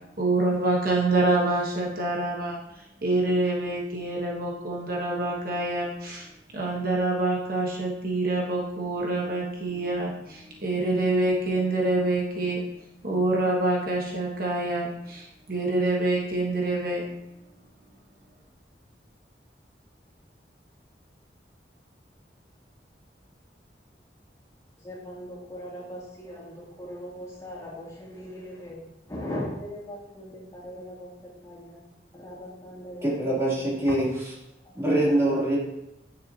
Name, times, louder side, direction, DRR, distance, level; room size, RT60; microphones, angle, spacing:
voice 1, 0.2-2.6 3.0-6.3 6.5-12.6 13.0-17.0, right 2 dB, 55° right, -2 dB, 1.3 m, -26 dB
voice 2, 24.8-28.8 29.1-31.8 32.1-33.4 34.8-35.2, equal, 20° left, -7 dB, 2.7 m, -39 dB
voice 3, 33.0-34.3 34.7-35.6, right 1 dB, 15° right, -7 dB, 3.0 m, -24 dB
9.6 x 7.3 x 2.9 m, 0.89 s
head